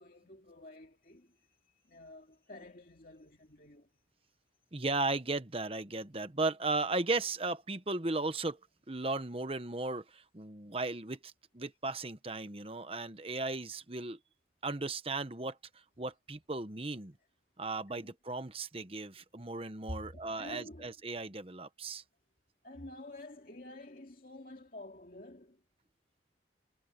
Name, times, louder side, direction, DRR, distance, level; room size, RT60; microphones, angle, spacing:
voice 1, 0.0-3.9 17.9-18.1 19.9-20.9 22.6-25.6, left 1 dB, 50° left, 2.5 m, -49 dB
voice 2, 4.7-8.6 8.9-14.2 14.6-15.6 16.0-17.1 17.6-22.0, right 3 dB, 30° right, 1.1 m, -36 dB
head